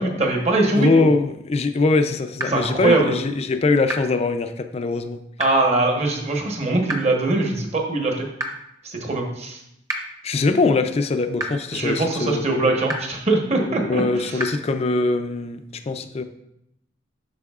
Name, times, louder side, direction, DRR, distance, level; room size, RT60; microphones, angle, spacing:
voice 1, 0.0-1.0 2.5-3.2 5.4-8.3 8.8-9.6 11.7-14.0, right 2 dB, 35° right, 1 dB, 1.1 m, -22 dB
voice 2, 0.7-5.2 10.2-12.8 13.5-16.2, left 3 dB, 35° left, 8 dB, 0.4 m, -22 dB
sound 1, 2.4-2.5 3.9-4.0 5.4-5.5 6.9-7.0 8.4-8.5 9.9-10.0 11.4-11.5 12.9-13.0 14.4-14.5, right 1 dB, 20° right, 0.8 m, -26 dB
8.4 x 6.1 x 2.4 m, 0.80 s
head